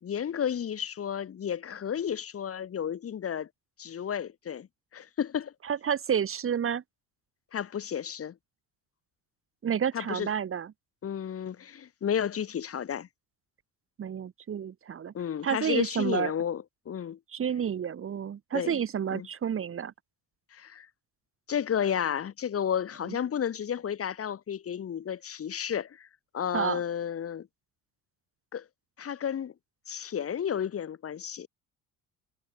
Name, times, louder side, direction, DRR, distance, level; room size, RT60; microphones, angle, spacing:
voice 1, 0.0-3.5 3.8-4.7 4.9-5.5 7.5-8.3 9.9-10.3 11.0-13.1 15.1-17.2 18.5-18.8 19.1-19.3 20.5-20.9 21.5-26.1 26.3-27.5 28.5-28.6 29.0-29.5 29.9-31.5, left 8 dB, 40° left, 2.6 m, -32 dB
voice 2, 5.7-6.8 9.6-10.7 14.0-15.1 15.4-16.3 17.3-19.9 26.5-26.8, right 8 dB, 40° right, 2.1 m, -30 dB
cardioid pair, 105°, 35 cm